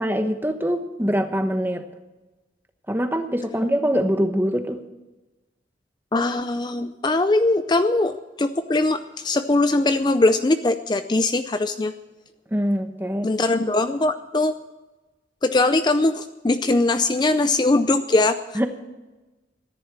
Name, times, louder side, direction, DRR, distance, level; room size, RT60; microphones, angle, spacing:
voice 1, 0.0-1.9 2.9-4.8 12.5-13.3 18.5-18.7, equal, 10° right, 7 dB, 1.0 m, -23 dB
voice 2, 6.1-11.9 13.2-14.5 15.4-18.4, left 2 dB, 25° left, 10 dB, 0.4 m, -21 dB
14.0 x 10.5 x 7.4 m, 1.1 s
head